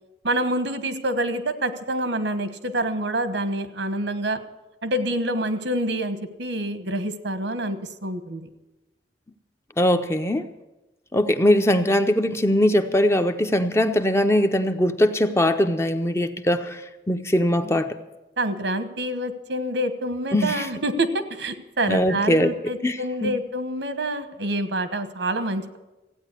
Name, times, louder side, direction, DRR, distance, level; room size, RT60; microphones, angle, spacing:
voice 1, 0.2-4.4 4.8-8.5 18.4-25.8, right 1 dB, 85° right, 10 dB, 1.3 m, -27 dB
voice 2, 9.8-10.5 11.1-16.8 17.1-18.0 20.3-20.7 21.9-22.5 22.8-23.3, left 1 dB, 15° left, 8 dB, 0.6 m, -21 dB
15.5 x 9.0 x 8.3 m, 1.1 s
head